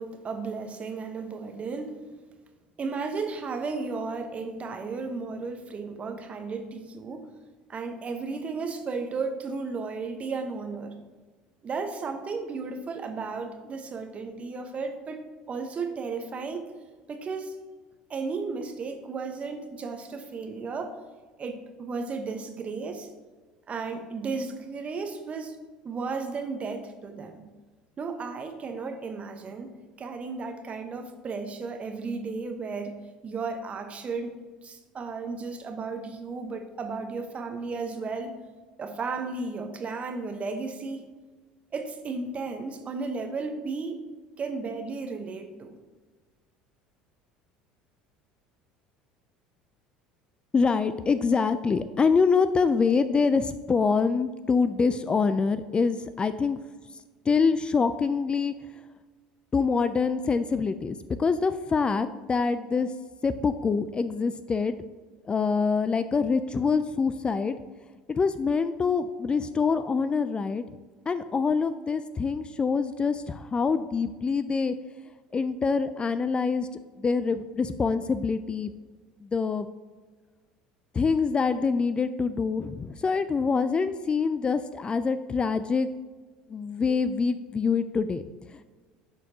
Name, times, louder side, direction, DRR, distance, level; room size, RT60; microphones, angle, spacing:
voice 1, 0.0-2.0 2.8-7.3 7.7-10.9 11.6-15.2 15.5-16.7 17.1-17.6 18.1-20.9 21.4-23.1 23.7-25.6 25.8-27.4 28.0-32.9 33.2-34.4 34.6-38.4 38.8-41.2 41.7-44.0 44.4-45.8, right 4 dB, 35° right, 6 dB, 1.0 m, -34 dB
voice 2, 50.5-56.6 57.3-58.5 59.5-62.9 63.2-64.7 65.3-67.6 68.1-70.6 71.1-74.7 75.3-76.7 77.0-78.7 79.2-79.7 80.9-85.9 86.5-88.2 88.5-88.6, left 5 dB, 25° left, 12 dB, 0.3 m, -25 dB
11.0 x 4.2 x 2.8 m, 1.4 s
hypercardioid pair, 75°, 4 cm